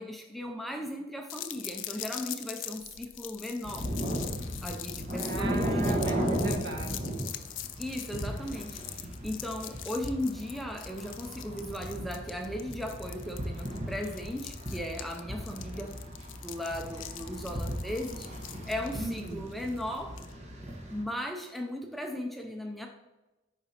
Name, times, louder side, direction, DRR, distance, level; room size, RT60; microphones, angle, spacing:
voice 1, 0.0-3.9 4.6-5.8 7.8-16.0 16.4-18.3 18.7-20.2 20.9-22.9, left 1 dB, ahead, 2 dB, 0.5 m, -37 dB
sound 1, 1.3-20.3, left 12 dB, 75° left, 0.5 m, -43 dB
sound 2, 3.6-21.0, equal, 35° right, 1.3 m, -36 dB
voice 2, 5.1-7.1 18.9-19.4, right 2 dB, 60° right, 0 dB, 1.4 m, -38 dB
8.9 x 5.0 x 2.9 m, 1.1 s
head